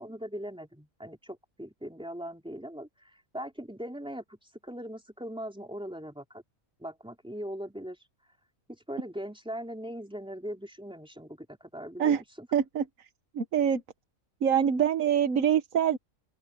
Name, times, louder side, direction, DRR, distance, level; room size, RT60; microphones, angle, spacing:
voice 1, 0.0-4.4 4.6-6.4 6.8-8.0 8.7-12.5, equal, 5° right, 3.5 m, -40 dB
voice 2, 12.5-12.8 13.3-13.8 14.4-16.0, right 8 dB, 80° right, 1.5 m, -24 dB
open air
omnidirectional pair, 1.4 m